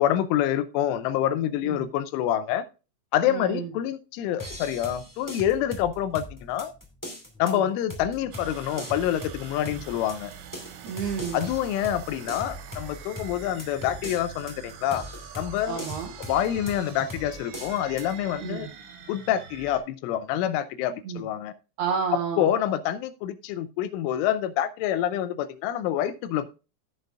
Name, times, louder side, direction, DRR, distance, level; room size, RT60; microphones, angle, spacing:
voice 1, 0.0-2.7 3.1-6.7 7.4-10.3 11.3-15.0 15.4-15.8 16.3-18.7 19.1-21.5 22.4-26.5, left 11 dB, 85° left, 13 dB, 3.1 m, -27 dB
voice 2, 3.3-3.7 7.4-7.7 9.7-9.8 10.8-11.5 15.7-16.1 18.4-18.7 21.0-21.3 21.8-22.5, right 7 dB, 70° right, 2 dB, 2.7 m, -31 dB
sound 1, 4.4-18.1, left 1 dB, 20° left, 0.5 m, -41 dB
sound 2, 8.3-19.8, right 8 dB, 90° right, 4.0 m, -45 dB
16.5 x 6.8 x 2.4 m, 0.32 s
omnidirectional pair, 5.5 m